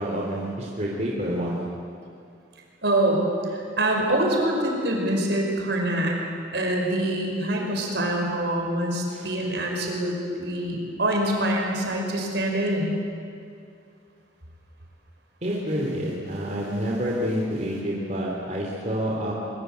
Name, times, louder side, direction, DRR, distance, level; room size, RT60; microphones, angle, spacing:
voice 1, 0.0-1.6 9.1-9.3 15.4-19.3, equal, 40° right, -3 dB, 3.2 m, -28 dB
voice 2, 2.8-3.3 3.5-6.2 6.5-13.0, right 1 dB, 65° right, 1 dB, 5.5 m, -25 dB
24.0 x 23.5 x 8.2 m, 2.4 s
head